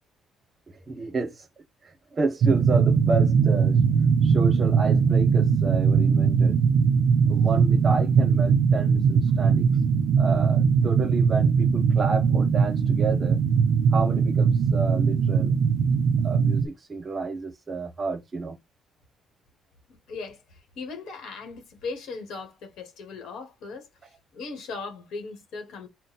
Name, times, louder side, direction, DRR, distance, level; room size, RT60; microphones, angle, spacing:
voice 1, 0.9-1.5 1.8-3.8 4.2-6.6 7.3-9.7 10.2-13.4 13.9-15.6 16.2-18.6, right 3 dB, 25° right, 0.8 m, -31 dB
sound 1, 2.4-16.7, right 6 dB, 55° right, 0.4 m, -20 dB
voice 2, 19.9-23.9 24.3-25.9, left 4 dB, 60° left, 1.3 m, -38 dB
3.8 x 2.1 x 4.1 m
cardioid pair, 175°, 0 cm